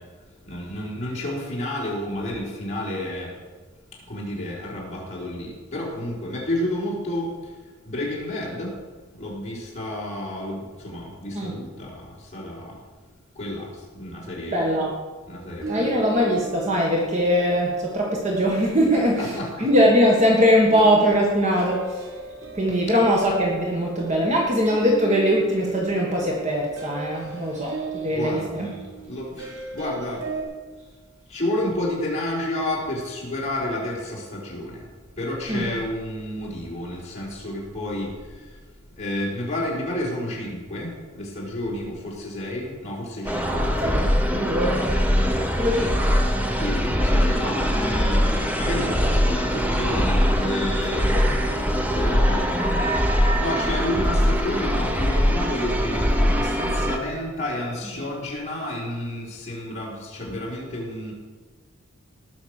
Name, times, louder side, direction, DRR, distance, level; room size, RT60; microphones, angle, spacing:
voice 1, 0.5-3.3 4.1-7.3 7.9-8.7 9.2-12.0 12.3-12.7 13.4-13.7 13.9-14.6 15.3-16.0 18.9-19.7 21.7-21.8 28.1-28.7 29.1-30.2 31.3-34.8 35.2-38.1 39.0-40.9 41.1-43.6 46.6-51.0 51.9-52.9 53.4-61.1, left 1 dB, 35° left, -5 dB, 4.6 m, -30 dB
voice 2, 14.5-14.9 15.7-22.2 22.5-28.7 35.5-35.7 43.4-44.9 45.6-46.3 48.0-48.2 51.1-51.5, equal, 35° right, -2 dB, 1.7 m, -22 dB
sound 1, 15.4-19.3 19.7-30.4, right 5 dB, 90° right, 3.3 m, -38 dB
sound 2, 43.3-57.0, equal, 5° right, 1.0 m, -22 dB
18.5 x 6.3 x 6.6 m, 1.4 s
head